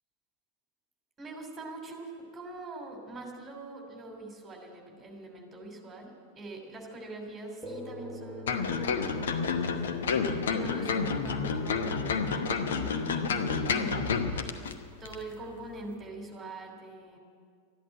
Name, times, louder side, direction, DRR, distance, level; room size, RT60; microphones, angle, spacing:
voice 1, 1.2-10.2 10.5-14.5 15.0-17.2, right 2 dB, 15° right, 1 dB, 3.0 m, -44 dB
sound 1, 7.6-16.4, left 1 dB, ahead, 1.3 m, -48 dB
sound 2, 8.5-14.7 15.1-15.2, left 5 dB, 60° left, 0.9 m, -29 dB
13.5 x 11.0 x 8.9 m, 2.1 s
figure-of-eight pair, 90°, 0 cm